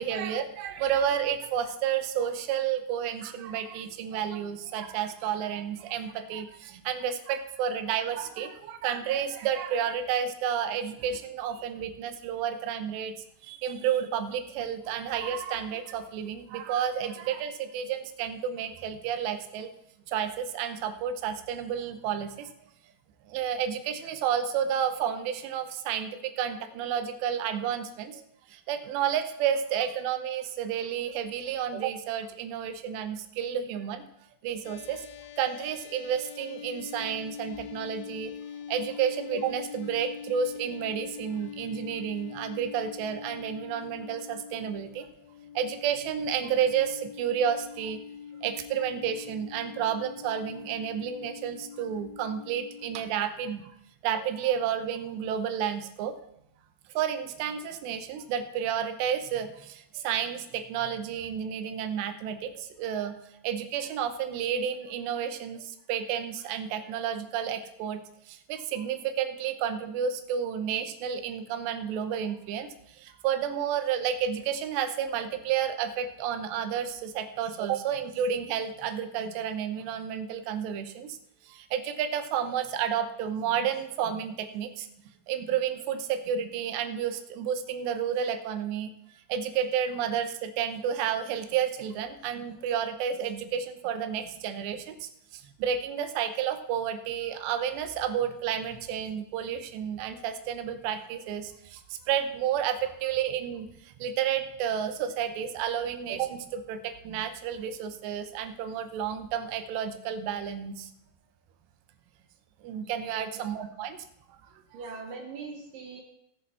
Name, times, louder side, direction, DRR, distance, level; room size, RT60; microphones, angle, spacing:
voice 1, 0.0-13.1 13.4-19.7 20.1-22.5 23.3-34.0 34.4-35.1 35.4-38.3 38.7-45.1 45.6-48.0 48.4-53.7 54.0-56.2 56.9-63.2 63.4-68.0 68.3-81.2 81.5-84.9 85.3-88.9 89.3-110.9 112.6-114.4, right 8 dB, 85° right, 9 dB, 3.0 m, -31 dB
sound 1, 34.6-53.1, left 7 dB, 80° left, 2.1 m, -43 dB
voice 2, 114.7-116.0, right 4 dB, 70° right, 2 dB, 2.3 m, -41 dB
18.5 x 7.0 x 4.3 m, 0.78 s
omnidirectional pair, 4.8 m